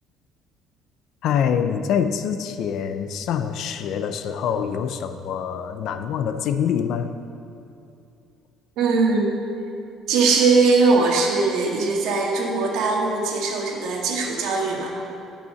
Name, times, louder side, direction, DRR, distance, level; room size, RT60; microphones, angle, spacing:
voice 1, 1.2-7.1, left 8 dB, 60° left, 9 dB, 0.5 m, -25 dB
voice 2, 8.8-9.4 10.1-14.9, right 4 dB, 75° right, -1 dB, 1.8 m, -20 dB
11.0 x 5.6 x 7.6 m, 2.6 s
cardioid pair, 145°, 0 cm